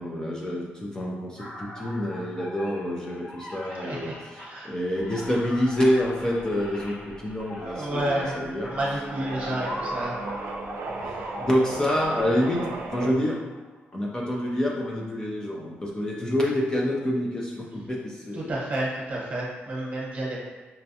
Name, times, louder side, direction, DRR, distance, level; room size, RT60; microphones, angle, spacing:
voice 1, 0.0-4.1 4.6-8.7 11.4-12.6 12.9-13.4 13.9-18.5, left 1 dB, 15° left, -3 dB, 0.4 m, -27 dB
sound 1, 1.4-13.7, equal, 40° left, 1.3 m, -40 dB
voice 2, 3.8-4.7 7.6-8.4 8.7-10.1 11.1-11.3 18.3-20.4, right 1 dB, 40° right, -4 dB, 1.0 m, -31 dB
sound 2, 5.0-13.1, right 3 dB, 85° right, 0.4 m, -38 dB
5.5 x 2.2 x 2.7 m, 1.3 s
cardioid pair, 140°, 4 cm